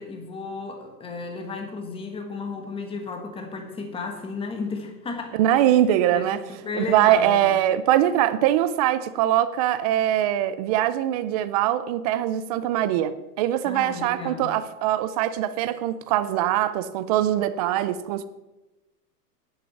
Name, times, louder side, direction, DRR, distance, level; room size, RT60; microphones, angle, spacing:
voice 1, 0.0-5.8 6.1-7.5 13.6-14.5, left 4 dB, 10° left, 1.5 m, -34 dB
voice 2, 5.4-6.4 6.8-18.3, right 12 dB, 25° right, 0.4 m, -22 dB
9.7 x 8.0 x 7.0 m
hypercardioid pair, 140°, 48 cm